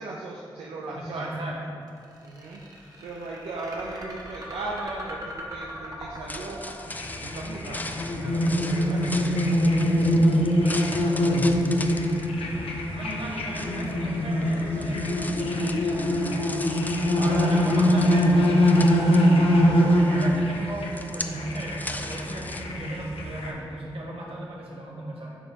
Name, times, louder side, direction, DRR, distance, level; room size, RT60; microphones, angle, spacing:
voice 1, 0.0-1.2 2.2-2.6 3.0-6.8 7.2-7.9 8.1-9.5 9.9-10.9 17.2-18.0, right 2 dB, 85° right, -3 dB, 0.6 m, -37 dB
voice 2, 0.9-1.6 11.7-12.3 12.9-16.6 17.1-18.7 19.5-25.3, right 1 dB, 70° right, -3 dB, 1.5 m, -37 dB
sound 1, 1.9-18.0, equal, 40° right, 1.3 m, -43 dB
sound 2, 6.1-22.6, left 2 dB, 15° left, 0.5 m, -39 dB
sound 3, 6.9-23.5, equal, 75° left, 0.8 m, -23 dB
8.4 x 4.9 x 2.8 m, 2.7 s
supercardioid pair, 40°, 10 cm